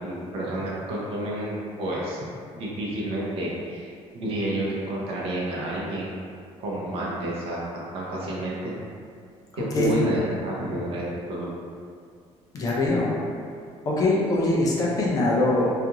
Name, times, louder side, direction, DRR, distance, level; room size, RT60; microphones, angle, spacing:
voice 1, 0.0-2.2 2.5-6.1 6.6-7.6 7.9-8.7 9.6-11.5, right 1 dB, 55° right, -5 dB, 0.6 m, -30 dB
voice 2, 9.5-10.1 12.5-13.1 13.9-15.7, left 2 dB, 30° left, -4 dB, 0.4 m, -23 dB
2.4 x 2.4 x 2.8 m, 2.2 s
cardioid pair, 175°, 11 cm